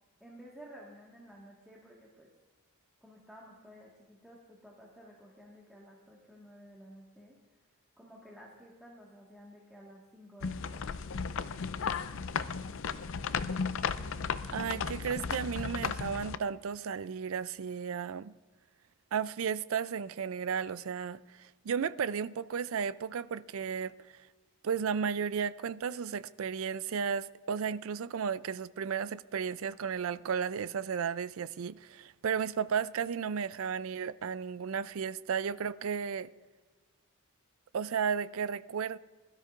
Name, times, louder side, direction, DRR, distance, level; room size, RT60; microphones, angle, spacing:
voice 1, 0.2-2.3 3.0-7.4 8.0-11.1, equal, ahead, 1.6 m, -53 dB
sound 1, 10.4-16.4, left 5 dB, 60° left, 0.5 m, -35 dB
voice 2, 14.5-18.3 19.1-23.9 24.6-36.3 37.7-39.0, right 7 dB, 65° right, 0.4 m, -34 dB
21.5 x 13.0 x 2.5 m
head